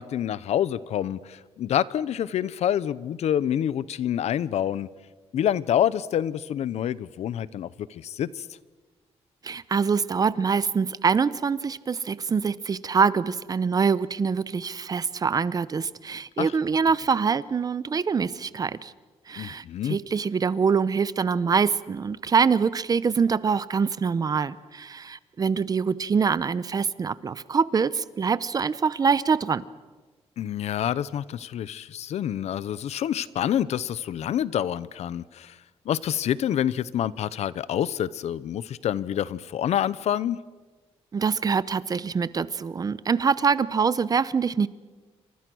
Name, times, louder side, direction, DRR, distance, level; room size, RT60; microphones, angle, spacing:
voice 1, 0.0-4.9 5.3-8.5 16.4-16.5 19.4-20.0 30.4-35.6 35.8-40.4, left 10 dB, 75° left, 18 dB, 0.8 m, -27 dB
voice 2, 9.4-18.9 19.3-29.6 41.1-44.7, right 5 dB, 35° right, 17 dB, 0.8 m, -24 dB
28.5 x 25.0 x 6.3 m, 1.3 s
cardioid pair, 140°, 11 cm